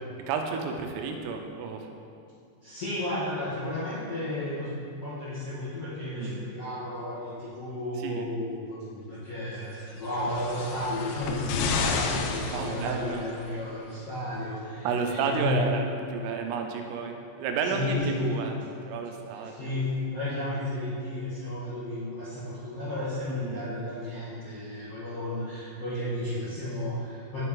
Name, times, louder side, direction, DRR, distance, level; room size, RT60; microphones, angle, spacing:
voice 1, 0.3-1.9 6.0-6.4 8.0-8.3 12.5-13.3 14.9-18.6 18.9-19.7 23.3-23.7, right 5 dB, 90° right, 4 dB, 3.5 m, -31 dB
voice 2, 2.6-4.7 5.0-15.6 17.6-18.4 19.5-27.4, left 1 dB, 55° left, -13 dB, 1.7 m, -33 dB
sound 1, 10.1-13.4 14.4-14.5, left 4 dB, 85° left, 2.6 m, -31 dB
9.4 x 8.3 x 3.9 m, 2.5 s
omnidirectional pair, 5.8 m